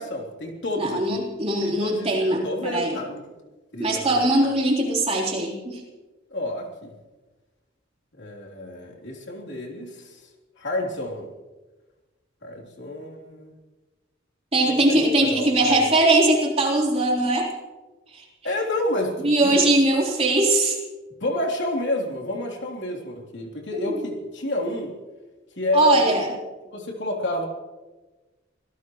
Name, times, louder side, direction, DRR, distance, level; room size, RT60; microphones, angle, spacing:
voice 1, 0.0-1.2 1.6-3.2 3.7-4.5 6.3-6.9 8.2-10.2 10.6-11.3 12.4-13.5 14.7-15.8 18.4-19.6 21.2-24.9 25.6-26.4 26.7-27.5, left 1 dB, 65° left, 0 dB, 3.4 m, -29 dB
voice 2, 0.8-3.0 3.8-5.8 14.5-17.5 19.2-20.8 23.7-24.0 25.7-26.3, right 2 dB, 30° right, -2 dB, 3.8 m, -21 dB
26.0 x 17.5 x 3.2 m, 1.2 s
head